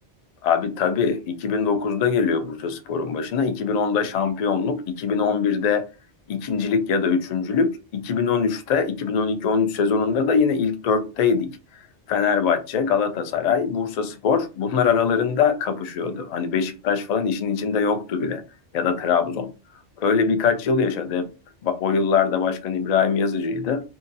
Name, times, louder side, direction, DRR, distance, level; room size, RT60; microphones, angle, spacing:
voice 1, 0.4-5.9 6.3-11.5 12.1-18.4 18.7-19.5 20.0-21.3 21.6-23.8, left 6 dB, 70° left, 0.3 m, -22 dB
2.8 x 2.4 x 2.6 m
omnidirectional pair, 1.2 m